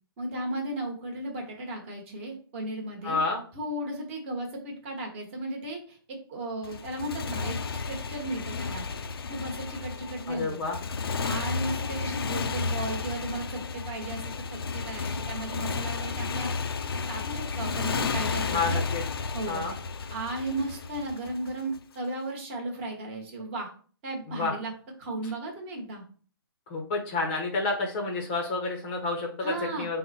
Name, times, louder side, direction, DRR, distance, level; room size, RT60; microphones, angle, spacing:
voice 1, 0.2-3.2 3.5-6.0 6.3-8.8 9.3-10.6 11.2-16.5 17.1-18.8 19.3-19.6 20.1-23.7 24.0-24.7 25.0-26.0 29.4-29.9, right 1 dB, 30° right, 1 dB, 1.1 m, -35 dB
voice 2, 3.0-3.4 10.3-10.8 18.5-19.0 19.5-19.7 24.3-24.5 26.7-30.0, left 3 dB, 25° left, 1 dB, 0.6 m, -29 dB
Motorcycle, 6.6-21.8, left 4 dB, 75° left, 0.4 m, -32 dB
3.7 x 2.1 x 4.1 m, 0.42 s
hypercardioid pair, 150°, 13 cm